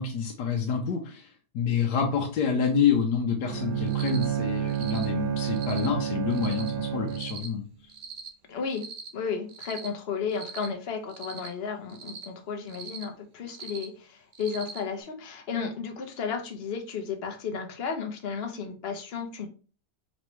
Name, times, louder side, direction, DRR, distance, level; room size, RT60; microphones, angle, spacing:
voice 1, 0.0-7.6, left 6 dB, 80° left, 1 dB, 1.3 m, -28 dB
Bowed string instrument, 3.4-7.5, right 10 dB, 85° right, 1.5 m, -30 dB
Cricket, 3.9-4.2 4.7-5.0 5.5-5.9 6.3-6.7 7.1-7.5 7.9-8.3 8.7-9.1 9.5-9.9 10.3-10.7 11.1-11.5 11.9-12.2 12.7-13.0 13.5-13.8 14.3-14.8, right 7 dB, 60° right, 0.6 m, -41 dB
voice 2, 8.5-8.8 9.1-19.5, left 6 dB, 50° left, 4 dB, 0.7 m, -33 dB
4.4 x 3.0 x 3.0 m, 0.36 s
omnidirectional pair, 1.8 m